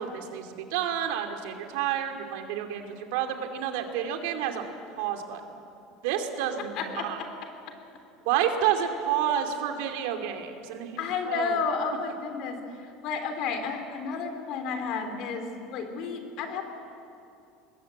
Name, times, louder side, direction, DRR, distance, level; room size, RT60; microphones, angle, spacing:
voice 1, 0.0-4.6 5.0-5.4 6.0-7.2 8.2-11.6, right 9 dB, 80° right, 5 dB, 2.7 m, -30 dB
voice 2, 6.7-7.3 11.0-12.6 13.0-16.6, left 5 dB, 55° left, 6 dB, 3.4 m, -31 dB
22.5 x 20.5 x 8.5 m, 2.6 s
cardioid pair, 145°, 0 cm